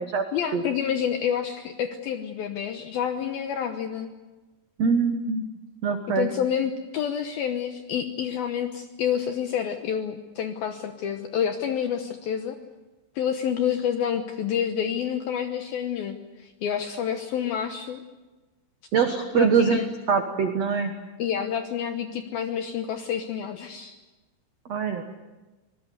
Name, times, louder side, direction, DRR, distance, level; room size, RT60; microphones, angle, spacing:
voice 1, 0.3-4.1 6.2-12.6 13.2-18.0 19.3-19.9 21.2-23.9, left 8 dB, 70° left, 7 dB, 2.4 m, -28 dB
voice 2, 4.8-5.4 5.8-6.3 18.9-19.8 20.1-20.9 24.6-25.0, right 6 dB, 75° right, 6 dB, 1.5 m, -23 dB
25.0 x 20.0 x 9.4 m, 1.2 s
omnidirectional pair, 5.4 m